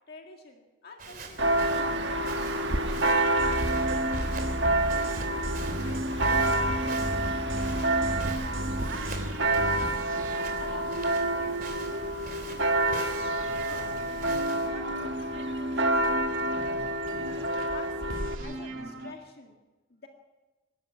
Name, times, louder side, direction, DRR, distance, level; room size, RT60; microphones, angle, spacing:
voice 1, 0.1-4.7 5.5-8.5 9.3-9.9 10.3-13.9 14.5-16.3 17.1-19.6 19.9-20.1, left 2 dB, 50° left, 2 dB, 2.0 m, -48 dB
Walk footsteps, 1.0-14.7, right 3 dB, 45° right, 3.4 m, -44 dB
Church bell, 1.4-18.4, right 2 dB, 60° right, 1.5 m, -28 dB
sound 1, 3.4-17.7 18.1-19.1, right 1 dB, 90° right, 2.5 m, -35 dB
24.5 x 12.5 x 9.6 m, 1.2 s
head